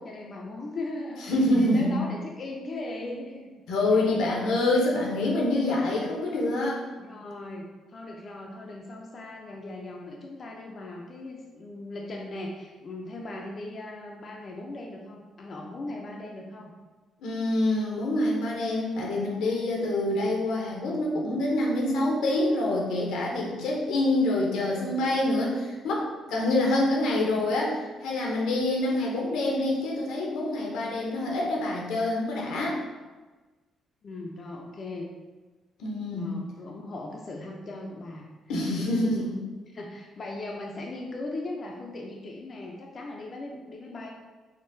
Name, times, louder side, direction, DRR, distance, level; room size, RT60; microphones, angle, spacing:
voice 1, 0.0-3.6 3.9-4.1 7.0-16.7 34.0-35.1 36.1-38.3 38.8-39.2 39.7-44.1, left 2 dB, 45° left, -1 dB, 0.4 m, -38 dB
voice 2, 1.3-2.0 3.7-6.8 17.2-32.8 35.8-36.3 38.5-39.4, left 1 dB, 85° left, -2 dB, 0.6 m, -26 dB
3.5 x 2.1 x 2.6 m, 1.3 s
cardioid pair, 90°, 0 cm